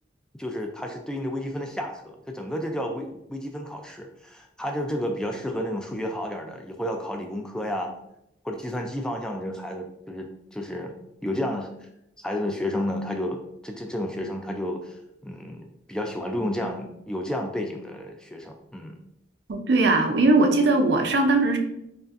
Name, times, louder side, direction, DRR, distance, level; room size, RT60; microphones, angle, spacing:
voice 1, 0.4-7.9 8.4-11.0 11.2-11.7 12.2-19.0, left 1 dB, 5° left, 3 dB, 0.3 m, -31 dB
voice 2, 19.5-21.6, right 2 dB, 70° right, 4 dB, 0.5 m, -20 dB
5.3 x 2.4 x 2.5 m, 0.81 s
head